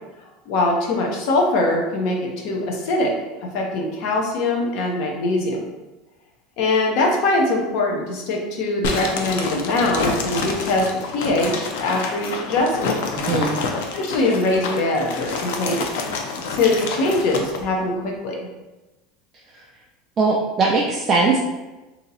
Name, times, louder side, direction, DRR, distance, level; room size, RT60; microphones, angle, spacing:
voice 1, 0.5-3.1 3.5-5.6 6.6-10.9 11.1-13.0 13.9-16.0 16.5-18.4, left 2 dB, 50° left, 0 dB, 0.7 m, -22 dB
sound 1, 8.8-17.6, left 4 dB, 85° left, 0.5 m, -28 dB
voice 2, 13.2-13.5 19.5-19.6 20.2-21.4, right 3 dB, 20° right, -2 dB, 0.3 m, -20 dB
2.8 x 2.7 x 3.9 m, 1.1 s
cardioid pair, 175°, 0 cm